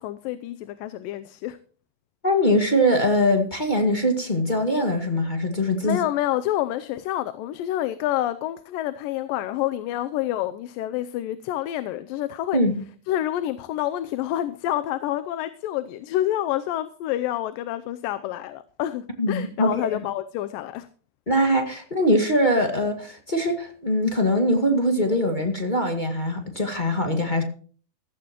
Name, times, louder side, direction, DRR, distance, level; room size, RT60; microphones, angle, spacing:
voice 1, 0.0-1.6 5.8-12.6 13.1-20.9, left 13 dB, 85° left, 2.4 m, -28 dB
voice 2, 2.2-6.0 12.5-12.8 19.2-20.0 21.3-27.4, equal, 20° left, 1.3 m, -22 dB
15.5 x 15.0 x 3.0 m
omnidirectional pair, 3.9 m